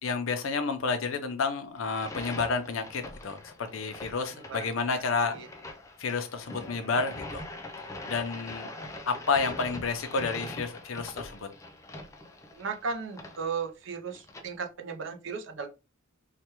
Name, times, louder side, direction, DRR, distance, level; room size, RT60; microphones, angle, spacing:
voice 1, 0.0-5.4 6.0-7.4 7.8-8.7 9.1-11.5, left 4 dB, 75° left, 0.6 m, -30 dB
sound 1, 1.8-14.4, left 2 dB, 15° left, 0.4 m, -43 dB
voice 2, 4.3-5.5 8.7-8.9 12.5-15.7, right 5 dB, 65° right, 0.6 m, -36 dB
3.2 x 2.2 x 2.9 m
head